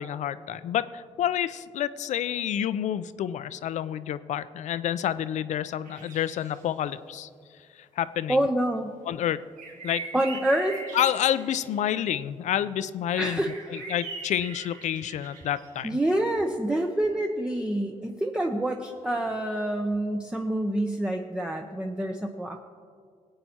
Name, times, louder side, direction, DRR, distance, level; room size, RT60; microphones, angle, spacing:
voice 1, 0.0-7.3 7.7-8.4 9.0-9.5 9.8-10.0 10.9-13.4 13.7-16.0, left 10 dB, 65° left, 15 dB, 0.4 m, -29 dB
sound 1, 5.8-6.6 9.6-11.8 13.4-15.8, right 3 dB, 75° right, 1.4 m, -41 dB
voice 2, 8.3-8.9 10.1-10.8 13.2-13.9 15.8-22.6, right 1 dB, 5° right, 3 dB, 0.6 m, -27 dB
20.0 x 8.8 x 2.8 m, 2.1 s
cardioid pair, 90°, 13 cm